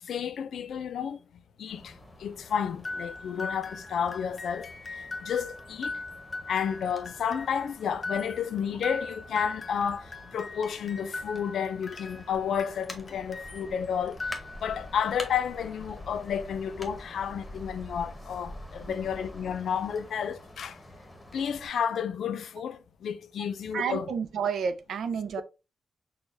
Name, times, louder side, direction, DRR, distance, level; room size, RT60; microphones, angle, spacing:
voice 1, 0.0-1.2 1.6-1.9 2.2-6.0 6.5-14.2 14.6-20.8 21.3-24.1, left 7 dB, 85° left, 0.4 m, -31 dB
sound 1, 1.7-21.7, left 1 dB, 10° left, 0.9 m, -47 dB
sound 2, 2.8-13.7 14.1-14.9, left 3 dB, 30° left, 0.6 m, -40 dB
voice 2, 23.7-25.4, right 6 dB, 85° right, 0.5 m, -31 dB
6.3 x 2.3 x 2.6 m
wide cardioid pair, 155°, 0 cm